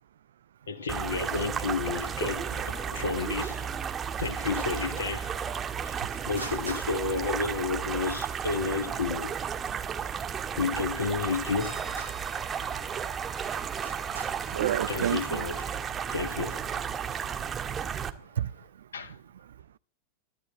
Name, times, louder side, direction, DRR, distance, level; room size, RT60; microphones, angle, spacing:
voice 1, 0.7-3.8 4.2-5.4 5.8-9.4 10.6-11.9 14.9-15.8 16.1-17.0 18.9-19.2, left 5 dB, 65° left, 2.3 m, -32 dB
sound 1, 0.9-18.1, right 7 dB, 20° right, 1.8 m, -33 dB
Traffic noise roadway noise, 3.2-18.7, right 3 dB, 85° right, 3.3 m, -51 dB
sound 2, 11.5-15.6, left 1 dB, 10° left, 1.5 m, -49 dB
voice 2, 14.5-15.4 18.4-18.9, right 10 dB, 65° right, 0.7 m, -30 dB
23.0 x 12.5 x 4.3 m
figure-of-eight pair, 90°, 0 cm